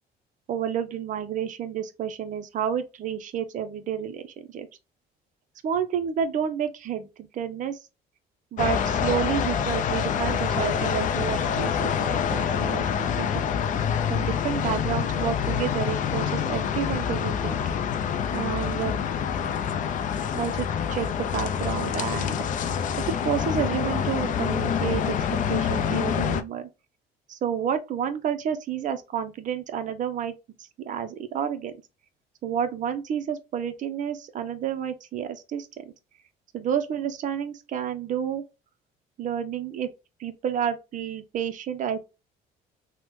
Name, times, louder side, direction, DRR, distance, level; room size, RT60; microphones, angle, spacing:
voice 1, 0.5-4.7 5.6-7.1 7.3-7.8 8.5-13.3 14.1-17.6 18.3-19.0 20.3-22.7 23.1-26.7 27.3-30.3 30.8-31.7 32.4-35.9 36.5-38.4 39.2-39.9 40.2-42.1, right 8 dB, 50° right, 0.5 m, -30 dB
sound 1, 8.6-26.4, left 7 dB, 50° left, 0.4 m, -26 dB
3.2 x 2.1 x 2.9 m
cardioid pair, 110°, 17 cm